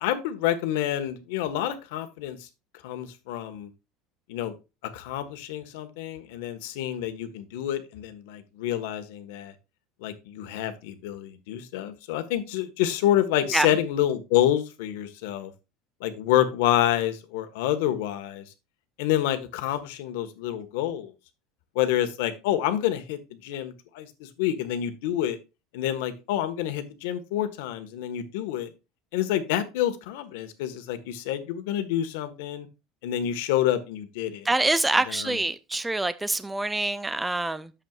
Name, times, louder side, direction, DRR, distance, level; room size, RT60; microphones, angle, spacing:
voice 1, 0.0-2.4 2.8-3.7 4.3-4.5 4.9-9.5 10.0-15.5 16.0-18.4 19.0-21.1 21.7-25.4 25.7-28.7 29.1-32.7 33.0-34.5 35.1-35.4, left 12 dB, 80° left, 1.5 m, -28 dB
voice 2, 34.4-37.7, right 2 dB, 5° right, 0.4 m, -25 dB
11.0 x 7.5 x 2.4 m
cardioid pair, 175°, 0 cm